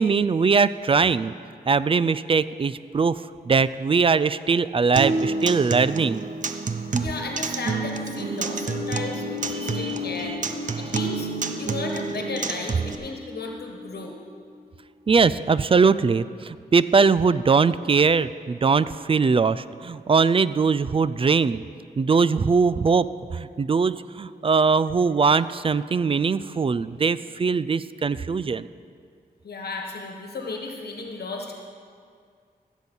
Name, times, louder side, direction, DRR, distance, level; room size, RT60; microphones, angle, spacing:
voice 1, 0.0-1.3 1.7-3.2 3.5-6.2 9.5-10.0 10.3-10.4 15.1-21.6 22.0-23.1 23.3-28.7, right 5 dB, 35° right, 16 dB, 0.4 m, -21 dB
Acoustic guitar, 5.0-12.9, right 4 dB, 50° right, 0.8 m, -29 dB
voice 2, 6.6-11.3 11.6-14.2 29.4-31.5, left 3 dB, 75° left, 2 dB, 1.3 m, -34 dB
sound 1, 8.2-14.6, left 6 dB, 5° right, 3.7 m, -37 dB
16.0 x 8.2 x 5.4 m, 2.2 s
cardioid pair, 80°, 17 cm